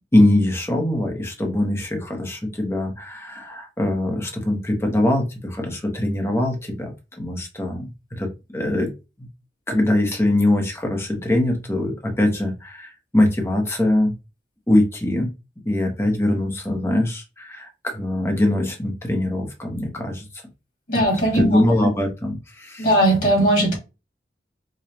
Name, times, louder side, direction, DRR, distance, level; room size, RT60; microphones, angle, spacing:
voice 1, 0.0-6.9 7.2-8.9 9.2-9.3 9.7-14.1 14.7-15.3 15.6-20.3 21.3-22.9, left 1 dB, 15° left, 0.9 m, -22 dB
voice 2, 20.9-21.6 22.8-23.8, right 1 dB, 55° left, 2.1 m, -18 dB
5.0 x 2.3 x 2.8 m
head